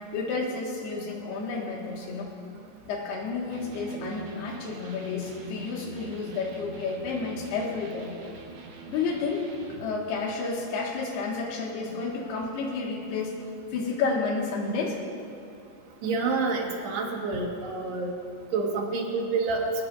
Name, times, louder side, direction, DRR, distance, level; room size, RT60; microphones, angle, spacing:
voice 1, 0.1-2.3 2.9-8.1 8.9-9.5 9.8-13.4 13.7-15.0, left 4 dB, 80° left, -1 dB, 3.9 m, -31 dB
Electric guitar, 3.5-9.9, right 4 dB, 65° right, 1.3 m, -45 dB
voice 2, 16.0-18.1 18.5-19.7, right 4 dB, 90° right, 0 dB, 3.9 m, -28 dB
22.5 x 19.5 x 2.7 m, 2.4 s
omnidirectional pair, 4.6 m